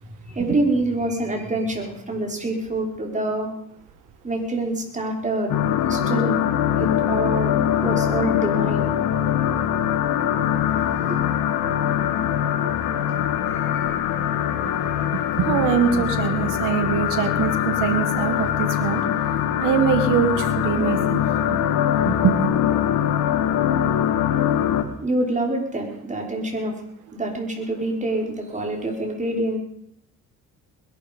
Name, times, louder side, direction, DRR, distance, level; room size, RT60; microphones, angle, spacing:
voice 1, 0.0-3.5 4.2-5.6 5.9-6.4 6.8-7.5 7.8-8.9 11.1-11.2 12.6-12.7 13.4-13.9 25.0-26.8 27.1-29.6, right 2 dB, 25° right, 1 dB, 5.5 m, -26 dB
sound 1, 5.5-24.8, left 10 dB, 85° left, 1.9 m, -22 dB
voice 2, 15.3-19.1 19.6-21.2 21.5-21.6 22.1-22.5, right 8 dB, 85° right, 10 dB, 2.0 m, -23 dB
21.0 x 12.0 x 5.5 m, 0.72 s
supercardioid pair, 75°, 31 cm